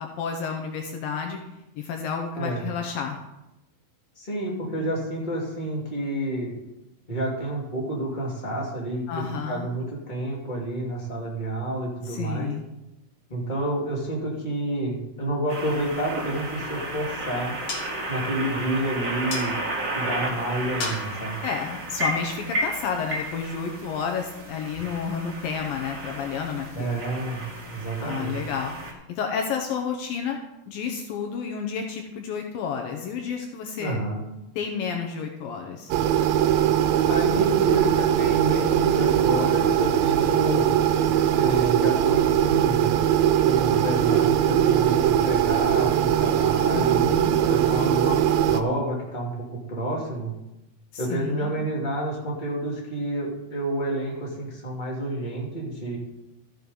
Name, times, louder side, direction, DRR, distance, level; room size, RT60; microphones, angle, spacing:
voice 1, 0.0-1.4 1.8-3.2 9.1-9.7 12.0-12.6 21.4-27.0 28.0-30.4 30.7-34.0 34.6-35.9 46.7-47.4 50.9-51.6, left 6 dB, 75° left, 3 dB, 2.5 m, -31 dB
voice 2, 2.3-2.7 4.2-6.5 7.1-12.5 13.3-17.6 18.1-19.5 19.9-21.4 26.7-28.4 33.8-34.2 37.1-40.7 41.3-43.0 43.4-47.1 47.5-48.2 48.5-50.3 51.0-56.0, right 1 dB, 15° left, -4 dB, 2.5 m, -29 dB
sound 1, 15.5-28.9, right 1 dB, 45° right, 1.1 m, -33 dB
sound 2, 17.7-22.9, left 4 dB, 55° left, 2.6 m, -40 dB
sound 3, 35.9-48.6, right 10 dB, 80° right, 2.3 m, -21 dB
13.5 x 6.3 x 5.4 m, 0.92 s
omnidirectional pair, 4.4 m